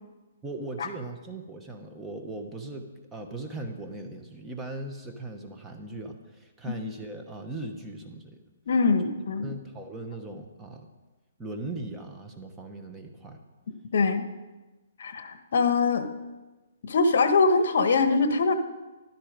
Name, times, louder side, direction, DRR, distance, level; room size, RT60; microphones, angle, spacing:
voice 1, 0.4-8.4 9.4-10.9 11.4-13.4, right 2 dB, 10° right, 4 dB, 1.0 m, -39 dB
voice 2, 8.7-9.5 13.9-14.3 15.0-16.1 16.8-18.6, left 4 dB, 60° left, 9 dB, 1.2 m, -23 dB
13.5 x 12.0 x 5.1 m, 1.2 s
hypercardioid pair, 165°, 0 cm